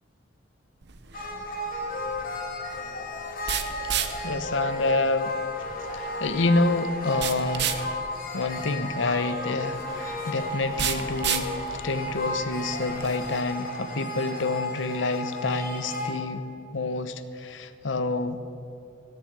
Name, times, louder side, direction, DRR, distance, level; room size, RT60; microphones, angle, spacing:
sound 1, 0.8-13.4, right 9 dB, 60° right, 1.0 m, -34 dB
sound 2, 1.1-16.1, left 1 dB, 50° left, 2.4 m, -33 dB
voice 1, 4.2-7.7 8.3-11.5 11.8-16.4 16.7-18.4, left 3 dB, 70° left, 11 dB, 0.9 m, -28 dB
17.5 x 7.4 x 9.0 m, 2.7 s
head